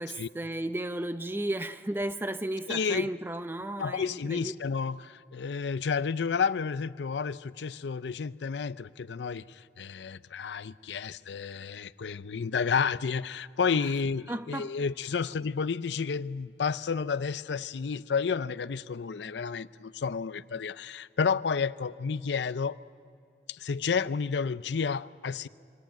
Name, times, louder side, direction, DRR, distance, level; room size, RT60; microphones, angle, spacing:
voice 1, 0.0-4.5 13.7-13.9 14.3-14.8, right 1 dB, 10° right, 0.5 m, -34 dB
voice 2, 2.7-3.1 3.8-22.8 23.5-25.5, left 5 dB, 85° left, 0.5 m, -31 dB
24.5 x 17.5 x 9.2 m
head